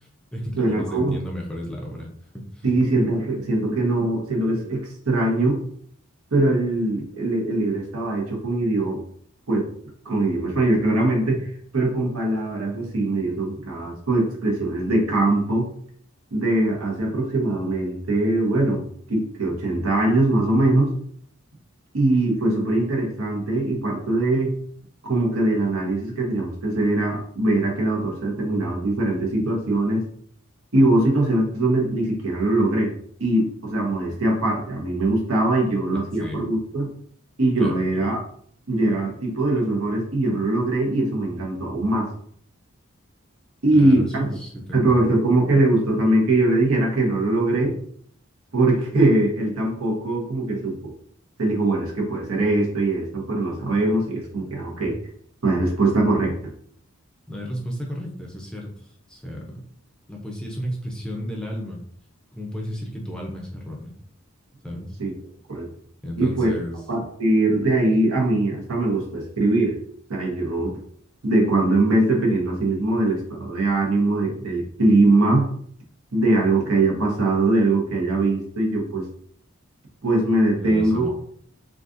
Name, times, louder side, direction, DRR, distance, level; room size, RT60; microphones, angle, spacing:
voice 1, 0.0-2.1 2.3-2.6 35.6-36.5 37.6-38.1 43.7-45.2 57.3-59.6 60.1-61.8 62.3-63.9 64.6-64.9 66.0-66.8 80.5-81.1, equal, 5° left, -1 dB, 0.5 m, -34 dB
voice 2, 0.6-1.2 2.6-5.6 6.3-9.0 9.5-9.7 10.0-15.7 16.3-20.9 21.9-24.5 25.0-30.1 30.7-32.9 33.2-36.9 37.4-38.2 38.7-42.1 43.6-44.3 44.7-47.7 48.5-50.9 51.4-55.0 55.4-56.4 65.0-65.1 65.5-65.7 66.2-66.5 66.9-69.8 70.1-70.7 71.2-75.5 76.1-79.1 80.0-81.1, right 2 dB, 80° right, -1 dB, 1.0 m, -21 dB
3.9 x 2.4 x 2.5 m, 0.62 s
head